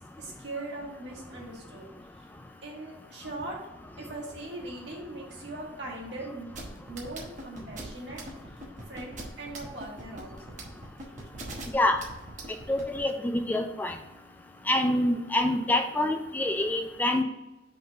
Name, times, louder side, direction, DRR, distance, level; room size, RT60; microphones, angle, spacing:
voice 1, 0.2-1.9 2.6-3.6 4.0-6.5 6.9-8.2 8.9-10.6 11.0-11.2, right 2 dB, 70° right, -2 dB, 1.9 m, -40 dB
sound 1, 6.5-13.0, right 2 dB, 40° right, 1.0 m, -40 dB
voice 2, 12.7-13.9 14.7-17.2, left 1 dB, 10° left, 5 dB, 0.3 m, -26 dB
5.5 x 3.8 x 5.5 m, 0.99 s
head